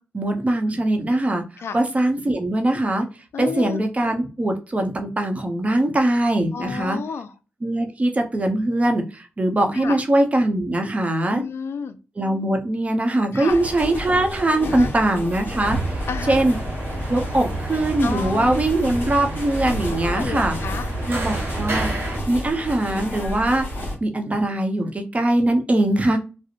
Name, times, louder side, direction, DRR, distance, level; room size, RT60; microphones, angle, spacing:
voice 1, 0.1-1.4 1.7-3.1 3.4-7.0 7.6-11.4 12.2-16.0 16.3-16.6 17.1-20.6 21.1-21.9 22.3-23.7 24.0-26.2, right 1 dB, 30° right, 4 dB, 0.7 m, -21 dB
voice 2, 3.3-3.8 6.5-7.3 9.7-10.0 11.3-12.0 13.3-13.6 14.6-14.9 16.1-16.4 18.0-18.6 19.8-20.9, left 6 dB, 70° left, 10 dB, 0.4 m, -31 dB
sound 1, 13.5-23.9, equal, 50° left, 1.3 m, -31 dB
sound 2, 15.6-22.2, right 1 dB, 65° right, 1.0 m, -30 dB
2.4 x 2.0 x 2.8 m, 0.31 s
cardioid pair, 55°, 4 cm